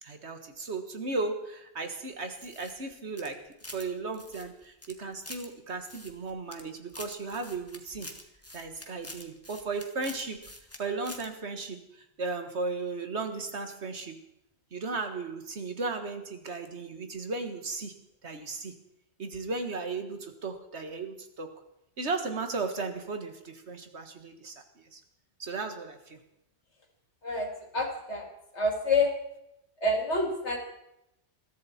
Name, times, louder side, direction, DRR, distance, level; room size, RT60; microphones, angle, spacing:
voice 1, 0.0-8.1 8.5-10.4 10.8-11.8 12.2-14.2 14.7-17.9 18.2-18.7 19.2-21.5 22.0-25.0 25.4-26.2, right 3 dB, 75° right, 7 dB, 1.9 m, -35 dB
sound 1, 2.3-3.9 4.1-5.5 5.8-6.6 6.9-10.8 11.0-11.3, left 1 dB, 15° left, 1.7 m, -46 dB
voice 2, 27.7-28.3 28.5-29.1 29.8-30.6, left 2 dB, 85° left, 2 dB, 3.0 m, -27 dB
21.5 x 14.5 x 4.3 m, 0.84 s
omnidirectional pair, 1.1 m